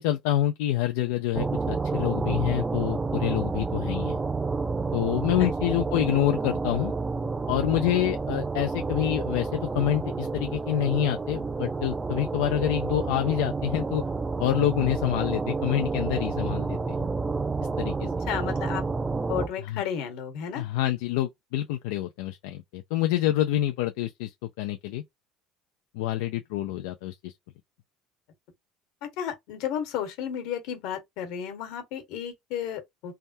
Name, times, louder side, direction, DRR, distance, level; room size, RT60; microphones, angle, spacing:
voice 1, 0.0-4.2 4.9-6.9 7.5-14.0 14.4-16.9 17.8-18.1 19.6-19.8 20.6-25.0 25.9-27.3, left 13 dB, 90° left, 0.3 m, -27 dB
sound 1, 1.3-19.5, right 4 dB, 15° right, 0.4 m, -29 dB
voice 2, 18.3-18.8 19.3-20.6 29.0-33.1, left 9 dB, 70° left, 1.2 m, -33 dB
3.3 x 2.2 x 2.6 m
cardioid pair, 140°, 0 cm